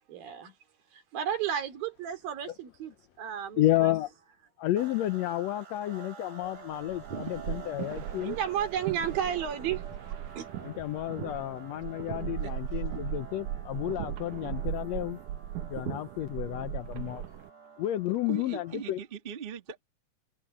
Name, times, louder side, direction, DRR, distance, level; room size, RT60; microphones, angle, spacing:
voice 1, 0.1-0.5 0.9-3.9 8.2-9.9 10.4-10.5, right 9 dB, 90° right, 4.7 m, -33 dB
voice 2, 3.6-4.1 4.6-8.4 10.6-15.2 15.7-17.2 17.8-19.0, left 14 dB, 90° left, 1.5 m, -31 dB
sound 1, 4.8-19.0, right 6 dB, 25° right, 3.0 m, -49 dB
sound 2, 6.7-17.5, right 11 dB, 70° right, 2.3 m, -38 dB
voice 3, 7.1-8.0 12.4-13.0 18.2-19.8, right 6 dB, 50° right, 0.6 m, -41 dB
omnidirectional pair, 4.0 m